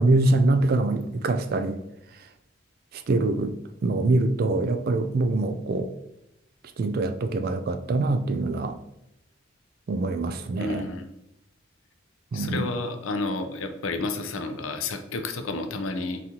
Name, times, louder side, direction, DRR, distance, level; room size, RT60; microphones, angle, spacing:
voice 1, 0.0-1.8 3.1-3.5 3.8-5.9 6.8-8.7 9.9-10.8 12.3-12.6, right 2 dB, 50° right, 0.3 m, -24 dB
voice 2, 10.6-11.1 12.3-16.2, left 3 dB, 85° left, 0.5 m, -30 dB
4.0 x 3.6 x 2.9 m
head